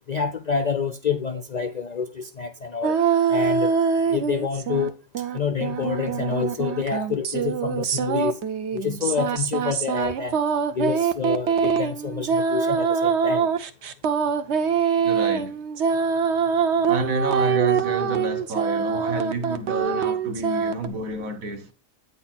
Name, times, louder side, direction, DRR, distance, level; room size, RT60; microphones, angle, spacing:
voice 1, 0.1-3.8 4.1-8.4 8.7-10.4 10.7-13.5, left 6 dB, 60° left, 0.4 m, -28 dB
sound 1, 2.8-4.9 5.1-20.9, right 6 dB, 60° right, 1.0 m, -24 dB
voice 2, 15.0-15.6 16.9-21.7, right 3 dB, 90° right, 1.7 m, -29 dB
9.2 x 4.2 x 5.8 m
omnidirectional pair, 1.4 m